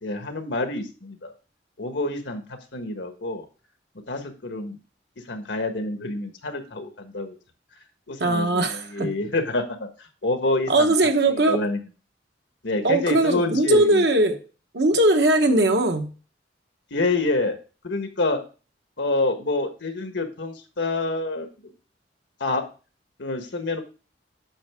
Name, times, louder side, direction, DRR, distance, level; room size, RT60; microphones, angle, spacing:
voice 1, 0.0-1.3 1.8-3.4 4.1-4.8 5.3-7.4 8.1-10.9 11.3-11.8 12.6-14.0 16.9-17.6 17.8-18.4 19.0-21.5 22.4-22.6 23.2-23.8, left 2 dB, 80° left, 6 dB, 1.4 m, -27 dB
voice 2, 8.2-9.1 10.7-11.6 12.8-14.4 14.7-16.1, right 2 dB, 65° right, 5 dB, 1.2 m, -20 dB
8.8 x 6.1 x 3.6 m, 0.35 s
head